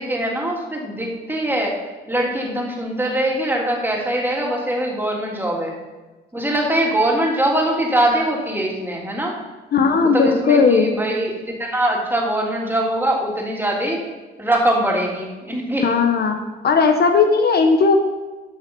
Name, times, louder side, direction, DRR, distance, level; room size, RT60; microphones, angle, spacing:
voice 1, 0.0-1.7 2.1-5.7 6.3-9.4 9.8-14.0 14.4-16.0, right 1 dB, 10° right, -2 dB, 3.0 m, -22 dB
voice 2, 9.7-10.9 15.8-16.4 16.6-18.0, left 5 dB, 55° left, 5 dB, 1.1 m, -16 dB
13.0 x 6.2 x 5.4 m, 1.2 s
cardioid pair, 90°, 20 cm